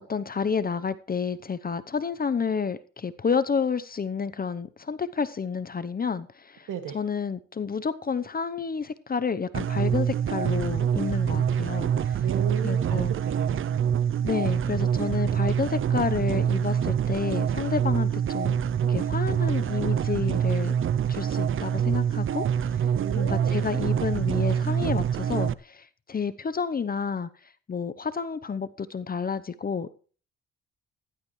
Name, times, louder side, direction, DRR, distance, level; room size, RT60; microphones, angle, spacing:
voice 1, 0.1-6.7 6.9-12.3 12.6-13.1 14.2-18.6 18.9-20.7 21.1-22.8 23.1-27.3 27.7-29.9, left 5 dB, 30° left, 13 dB, 0.8 m, -30 dB
sound 1, 9.5-25.5, right 8 dB, 45° right, 0.6 m, -25 dB
voice 2, 12.2-13.8 23.0-23.6, right 9 dB, 85° right, 7 dB, 2.2 m, -35 dB
15.5 x 11.5 x 3.2 m, 0.39 s
cardioid pair, 90°, 30 cm